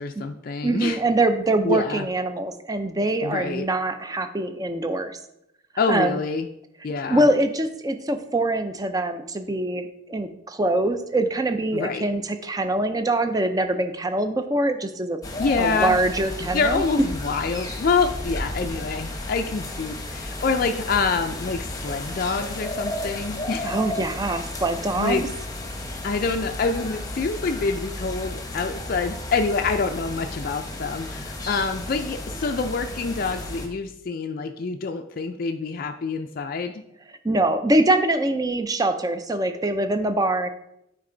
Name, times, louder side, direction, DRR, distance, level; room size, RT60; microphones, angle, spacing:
voice 1, 0.0-1.0 1.6-2.1 3.2-3.7 5.8-6.5 6.8-7.3 11.7-12.1 15.4-16.0 16.4-23.8 25.0-25.2 26.0-36.8, left 4 dB, 45° left, 5 dB, 0.4 m, -26 dB
voice 2, 0.6-5.2 5.9-6.2 7.1-15.2 15.6-16.8 23.6-25.3 37.2-40.5, right 2 dB, 20° right, 8 dB, 0.5 m, -24 dB
sound 1, 15.2-33.7, left 1 dB, 20° left, 0.9 m, -33 dB
9.0 x 4.5 x 3.8 m, 0.81 s
head